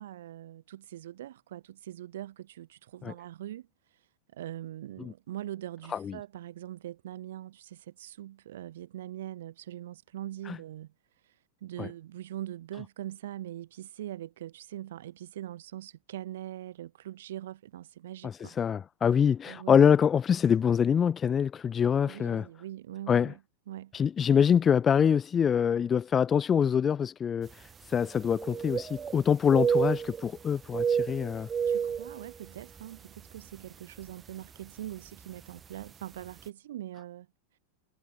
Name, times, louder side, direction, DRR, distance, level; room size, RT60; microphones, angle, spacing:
voice 1, 0.0-4.1 4.3-10.9 11.2-18.6 19.5-19.9 22.0-23.4 23.7-23.9 31.7-37.3, right 13 dB, 60° right, 0.9 m, -42 dB
voice 2, 18.2-22.5 23.1-23.3 23.9-31.5, left 7 dB, 20° left, 0.7 m, -25 dB
sound 1, 27.5-27.6 27.9-29.2 29.5-30.4 30.6-32.8 33.2-33.4 34.0-34.3 35.4-35.5 35.8-35.9, right 7 dB, 20° right, 0.7 m, -30 dB
figure-of-eight pair, 90°, 0 cm